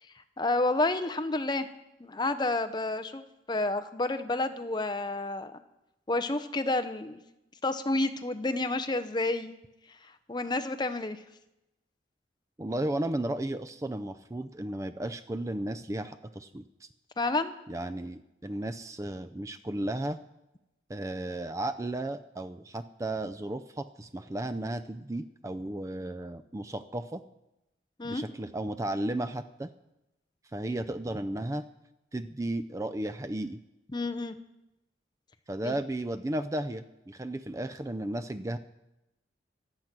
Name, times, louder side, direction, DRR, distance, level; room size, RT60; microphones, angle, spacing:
voice 1, 0.4-1.7 2.0-3.2 3.5-5.5 6.1-7.2 7.6-9.5 10.3-11.2 17.2-17.5 28.0-28.2 33.9-34.3 35.6-35.8, left 2 dB, 25° left, 9 dB, 0.7 m, -29 dB
voice 2, 12.6-16.9 17.7-20.2 20.9-27.2 28.0-29.7 30.5-31.7 32.1-33.6 35.5-38.6, right 1 dB, 15° right, 11 dB, 0.4 m, -34 dB
22.5 x 8.0 x 6.0 m, 0.93 s
head